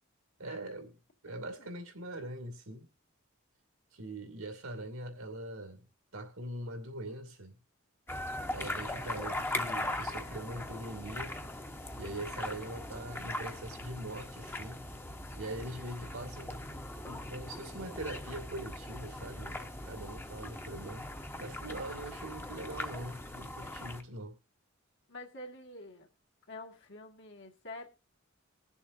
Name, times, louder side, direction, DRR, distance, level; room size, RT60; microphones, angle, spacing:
voice 1, 0.4-2.9 3.9-5.9 6.1-7.6 8.5-11.4 11.9-14.8 15.4-16.8 17.1-21.1 21.4-24.4, right 1 dB, 85° right, 2.5 m, -42 dB
voice 2, 1.3-1.7 25.1-26.1 26.5-27.9, left 2 dB, 60° left, 2.0 m, -47 dB
sound 1, 8.1-24.0, left 1 dB, 10° left, 1.0 m, -40 dB
20.5 x 7.1 x 2.6 m
head